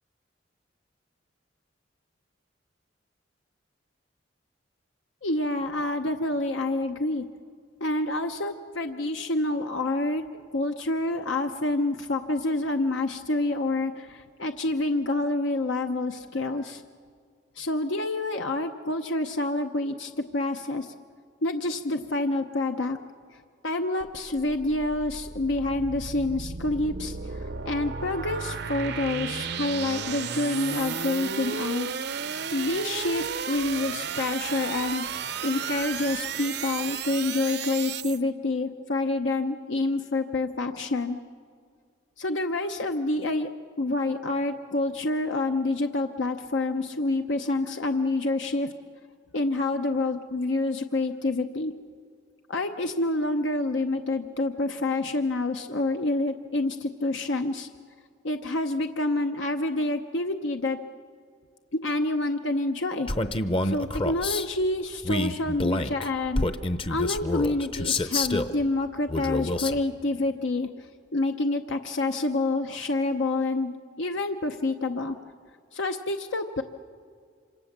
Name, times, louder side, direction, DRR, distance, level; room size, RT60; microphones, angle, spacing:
voice 1, 5.2-7.3 7.8-10.2 10.5-16.8 17.6-20.9 21.4-23.0 23.6-31.9 32.2-35.1 35.4-41.2 42.2-43.5 43.8-48.7 49.3-51.7 52.5-57.7 58.2-60.8 61.8-63.1 63.6-66.5 66.9-75.2 75.7-76.6, left 2 dB, 75° left, 5 dB, 0.8 m, -28 dB
sound 1, 24.0-38.2, right 6 dB, 55° right, 0.7 m, -34 dB
Male speech man speaking, 63.1-64.5 65.0-68.5 69.1-69.8, left 2 dB, 25° left, 0.8 m, -27 dB
26.5 x 25.5 x 7.3 m, 2.2 s
head